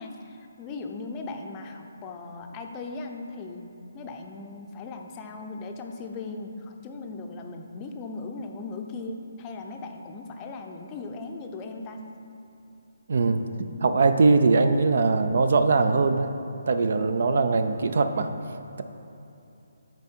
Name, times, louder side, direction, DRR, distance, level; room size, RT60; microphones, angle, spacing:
voice 1, 0.0-12.0, left 3 dB, 20° left, 3 dB, 0.5 m, -38 dB
voice 2, 13.1-16.3 16.7-18.3, right 4 dB, 60° right, 9 dB, 0.4 m, -21 dB
9.6 x 4.2 x 4.4 m, 2.8 s
figure-of-eight pair, 150°, 0 cm